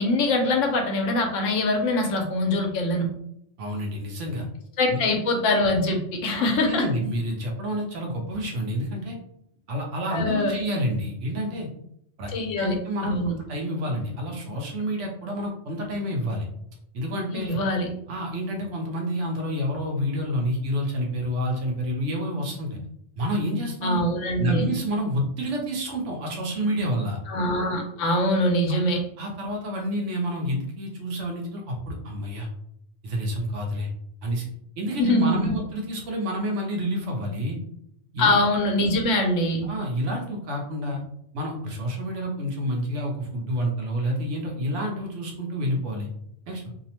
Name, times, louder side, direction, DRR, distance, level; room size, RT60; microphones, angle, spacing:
voice 1, 0.0-3.1 4.8-6.8 10.1-10.5 12.3-12.7 13.0-13.3 17.3-17.9 23.8-24.7 27.3-29.0 35.0-35.5 38.2-39.7, left 1 dB, 75° left, 3 dB, 0.9 m, -23 dB
voice 2, 3.6-4.5 4.9-5.0 6.3-9.2 9.7-11.7 12.2-16.5 16.9-17.6 18.1-22.8 23.2-24.0 24.4-27.2 29.2-32.5 33.0-33.9 34.2-34.5 34.8-37.6 38.1-38.5 39.6-41.0 41.3-46.1 46.5-46.6, equal, 70° right, 0 dB, 0.9 m, -29 dB
2.7 x 2.0 x 2.8 m, 0.73 s
omnidirectional pair, 1.4 m